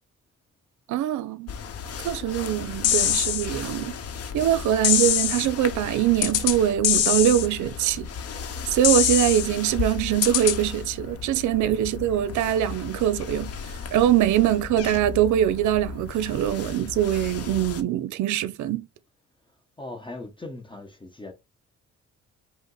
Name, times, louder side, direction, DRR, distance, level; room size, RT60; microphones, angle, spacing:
voice 1, 0.9-1.5 2.0-4.0 4.3-8.1 8.7-13.5 13.9-18.9, right 11 dB, 75° right, 0.5 m, -23 dB
sound 1, 1.5-17.8, left 6 dB, 55° left, 0.8 m, -36 dB
sound 2, 2.8-3.5 4.8-5.5 6.2-6.6 6.8-7.5 8.8-9.5 10.2-10.6, left 11 dB, 85° left, 0.6 m, -22 dB
voice 2, 19.8-21.3, left 2 dB, 15° left, 0.9 m, -39 dB
5.1 x 2.0 x 3.8 m
cardioid pair, 90°, 30 cm